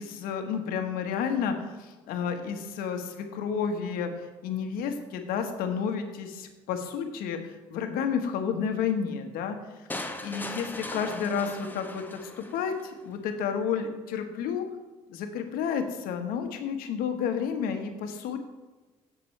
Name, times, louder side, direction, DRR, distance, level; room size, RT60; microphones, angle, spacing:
voice 1, 0.0-4.1 4.4-9.6 10.2-14.7 15.1-18.4, left 7 dB, 75° left, 6 dB, 1.3 m, -31 dB
sound 1, 9.9-12.9, left 2 dB, 10° left, 1.1 m, -38 dB
16.5 x 6.1 x 3.3 m, 1.2 s
hypercardioid pair, 60°, 15 cm